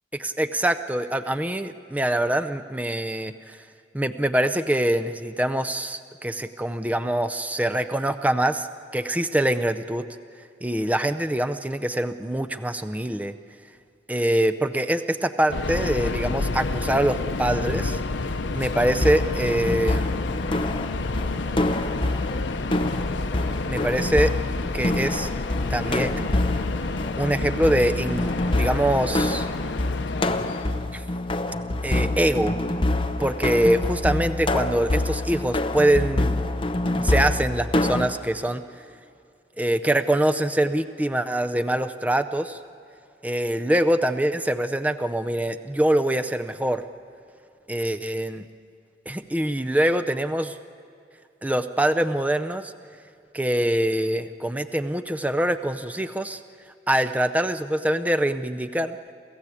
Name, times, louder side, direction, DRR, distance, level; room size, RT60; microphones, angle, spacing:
voice 1, 0.2-3.6 3.9-8.7 8.9-10.1 10.6-13.3 14.1-18.0 18.5-20.0 23.7-24.3 24.7-25.3 25.7-26.3 27.2-29.5 30.9-31.0 31.8-32.6 33.2-36.5 37.0-38.6 39.6-42.6 43.2-46.8 47.7-48.4 49.1-50.6 51.4-52.7 53.3-56.4 56.9-59.0, right 1 dB, 10° right, 9 dB, 0.5 m, -24 dB
Subway metro underground, 15.5-30.8, left 3 dB, 75° left, 0.7 m, -30 dB
sound 1, 18.9-38.1, left 1 dB, 25° left, 0.9 m, -26 dB
28.5 x 15.0 x 8.4 m, 2.4 s
head